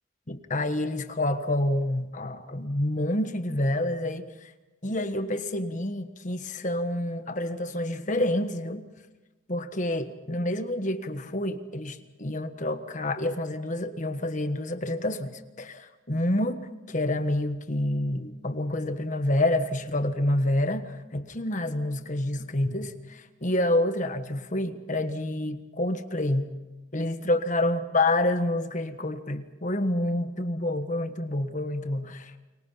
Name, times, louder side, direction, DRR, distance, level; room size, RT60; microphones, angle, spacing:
voice 1, 0.3-4.5 4.8-8.8 9.5-26.5 26.9-32.4, left 1 dB, 40° left, 8 dB, 1.5 m, -28 dB
29.5 x 23.5 x 5.8 m, 1.1 s
head